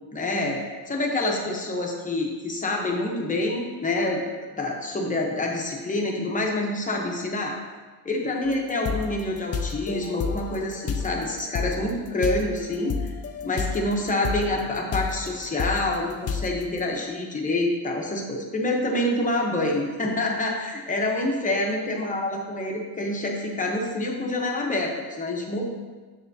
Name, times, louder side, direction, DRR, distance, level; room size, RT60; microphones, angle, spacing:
voice 1, 0.1-0.6 0.9-4.2 4.6-7.5 8.1-13.1 13.4-25.7, left 2 dB, 20° left, 0 dB, 1.0 m, -27 dB
sound 1, 8.5-13.9 14.2-16.6, left 6 dB, 40° left, 0.4 m, -31 dB
7.3 x 6.7 x 2.8 m, 1.4 s
cardioid pair, 145°, 40 cm